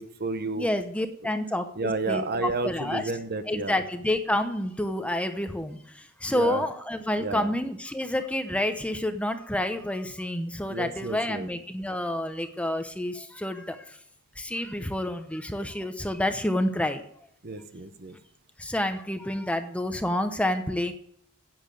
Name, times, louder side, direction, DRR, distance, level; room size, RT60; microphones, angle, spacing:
voice 1, 0.0-0.7 1.8-3.8 6.3-6.6 7.2-7.5 10.7-11.5 17.4-18.2, right 3 dB, 45° right, 10 dB, 1.0 m, -31 dB
voice 2, 0.6-3.1 3.5-5.7 6.2-13.1 13.4-13.6 14.5-17.0 18.7-20.9, left 1 dB, 5° left, 8 dB, 0.8 m, -28 dB
10.5 x 8.8 x 7.6 m, 0.68 s
head